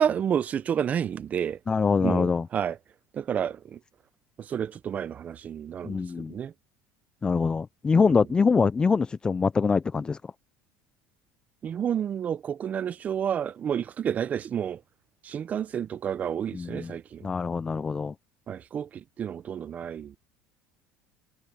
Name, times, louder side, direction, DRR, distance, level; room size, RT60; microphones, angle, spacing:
voice 1, 0.0-1.6 2.0-2.8 3.1-3.8 4.4-6.5 11.6-14.8 15.2-17.3 18.5-20.2, right 8 dB, 35° right, 0.7 m, -30 dB
voice 2, 1.7-2.5 5.8-6.3 7.2-10.2 16.5-17.0 17.2-18.1, left 5 dB, 20° left, 0.5 m, -24 dB
supercardioid pair, 105°, 4 cm